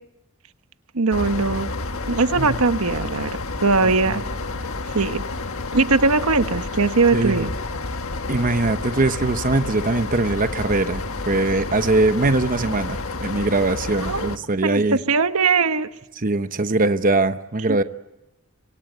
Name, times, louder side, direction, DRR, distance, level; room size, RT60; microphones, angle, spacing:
voice 1, 0.9-1.7 2.1-3.3 3.6-4.2 4.9-5.2 5.7-7.5 12.6-12.7 14.0-14.3 14.6-15.9 17.7-17.8, right 4 dB, 85° right, 10 dB, 1.2 m, -20 dB
sound 1, 1.1-14.4, left 3 dB, 75° left, 1.5 m, -30 dB
voice 2, 7.1-7.5 8.3-15.0 16.2-17.8, right 2 dB, 40° right, 10 dB, 0.9 m, -21 dB
27.0 x 25.5 x 8.0 m, 0.92 s
head